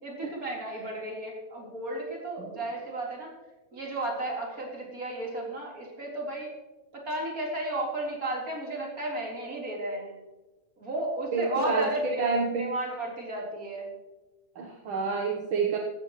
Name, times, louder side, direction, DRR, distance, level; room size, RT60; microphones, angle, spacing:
voice 1, 0.0-3.3 3.7-6.5 6.9-10.2 10.8-12.3 12.6-13.9, right 1 dB, 30° right, -2 dB, 4.2 m, -33 dB
voice 2, 11.3-12.7 14.6-15.8, right 4 dB, 55° right, 2 dB, 1.6 m, -28 dB
16.5 x 13.5 x 3.2 m, 1.1 s
omnidirectional pair, 3.4 m